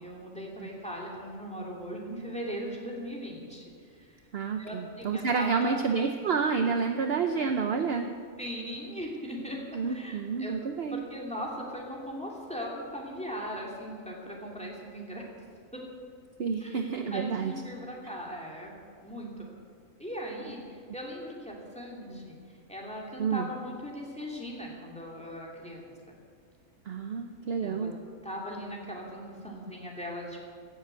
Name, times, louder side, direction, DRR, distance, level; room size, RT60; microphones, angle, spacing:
voice 1, 0.0-4.2 4.6-5.8 8.4-10.5 10.9-15.2 15.7-15.8 16.6-18.7 19.0-19.5 20.0-22.4 22.7-25.9 27.6-27.9 28.2-30.4, equal, 5° left, -3 dB, 2.8 m, -39 dB
voice 2, 4.3-8.1 9.7-11.0 16.4-17.5 23.2-23.5 26.9-28.0, right 5 dB, 55° right, 6 dB, 0.9 m, -29 dB
16.0 x 7.9 x 8.1 m, 2.2 s
omnidirectional pair, 1.4 m